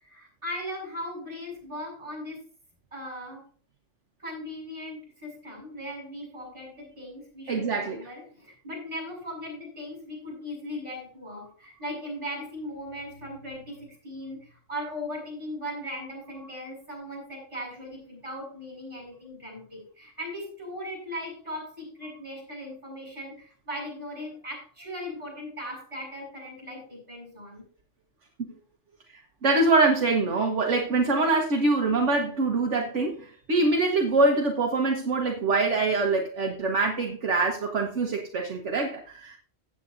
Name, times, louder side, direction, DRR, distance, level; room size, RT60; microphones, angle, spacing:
voice 1, 0.0-2.4 2.9-3.5 4.2-27.7, equal, 25° right, -4 dB, 6.4 m, -38 dB
voice 2, 7.5-8.0 29.4-39.4, right 3 dB, 70° right, 1 dB, 1.6 m, -24 dB
15.5 x 8.7 x 2.6 m, 0.41 s
omnidirectional pair, 1.3 m